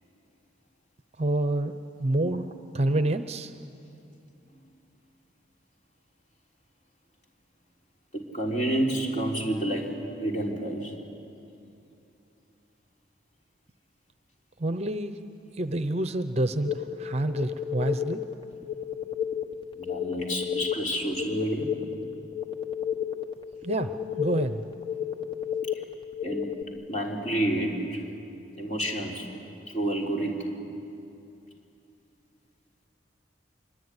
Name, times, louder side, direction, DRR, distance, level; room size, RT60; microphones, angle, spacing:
voice 1, 1.2-2.5 2.7-3.5 14.6-15.2 15.6-18.2 23.6-24.6, right 1 dB, 35° right, 10 dB, 0.8 m, -28 dB
voice 2, 8.1-10.9 19.7-21.7 26.2-26.6 26.9-28.0 28.6-29.3 29.7-30.5, right 1 dB, 40° left, -1 dB, 3.7 m, -29 dB
sound 1, 16.6-26.6, left 9 dB, 25° left, 1.1 m, -32 dB
25.5 x 24.0 x 9.8 m, 2.8 s
head